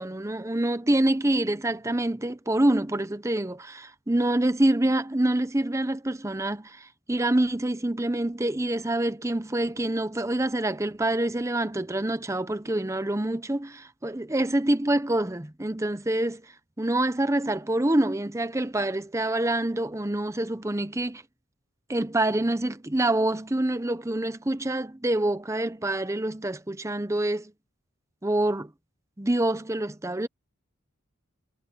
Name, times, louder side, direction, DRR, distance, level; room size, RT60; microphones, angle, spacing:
voice 1, 0.0-16.4 16.8-21.2 21.9-27.5 28.2-28.7 29.2-30.3, right 1 dB, 15° right, 0.8 m, -26 dB
head